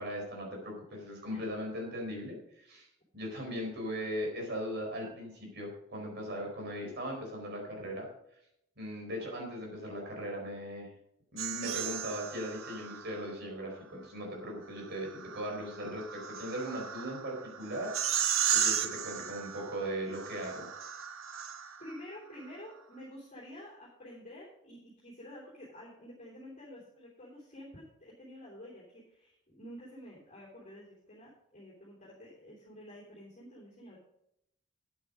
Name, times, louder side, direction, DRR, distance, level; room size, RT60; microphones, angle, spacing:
voice 1, 0.0-2.9 3.1-8.1 8.8-10.9 11.3-20.7, equal, 55° right, 0 dB, 4.5 m, -39 dB
sound 1, 11.4-13.3 14.8-22.0, right 9 dB, 70° right, 0.9 m, -35 dB
voice 2, 21.8-34.0, equal, 35° left, -6 dB, 3.3 m, -49 dB
9.6 x 8.7 x 5.2 m, 0.78 s
head